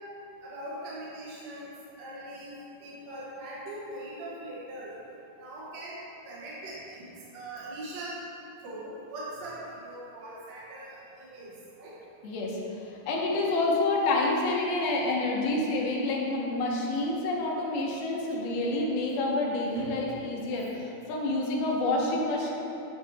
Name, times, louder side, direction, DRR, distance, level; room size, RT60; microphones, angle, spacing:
voice 1, 0.4-4.9 5.4-6.0 6.3-8.2 8.6-11.9 18.2-18.3 19.8-20.0, right 1 dB, 65° right, -7 dB, 1.7 m, -41 dB
voice 2, 12.2-22.5, left 2 dB, 75° left, -2 dB, 2.7 m, -28 dB
10.5 x 5.6 x 3.4 m, 2.8 s
omnidirectional pair, 4.5 m